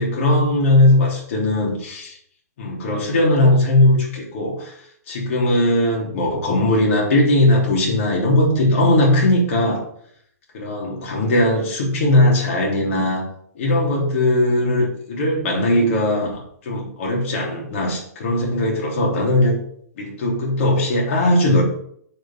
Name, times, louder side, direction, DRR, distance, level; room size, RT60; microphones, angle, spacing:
voice 1, 0.0-2.2 2.6-4.7 5.1-9.8 10.5-13.2 13.5-19.6 20.0-21.6, left 1 dB, 50° left, -2 dB, 3.4 m, -19 dB
7.6 x 5.2 x 6.0 m, 0.66 s
hypercardioid pair, 130°, 9 cm